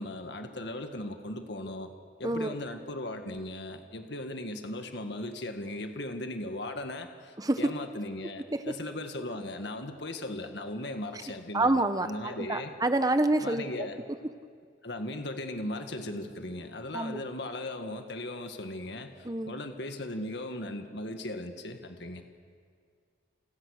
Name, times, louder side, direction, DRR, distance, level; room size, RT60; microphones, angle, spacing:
voice 1, 0.0-1.9 2.2-12.7 13.4-14.0 14.8-22.2, left 1 dB, 60° left, 5 dB, 1.8 m, -38 dB
voice 2, 11.5-13.6 16.9-17.2 19.2-19.5, right 2 dB, 20° right, 9 dB, 0.9 m, -27 dB
29.5 x 29.0 x 6.5 m, 2.1 s
head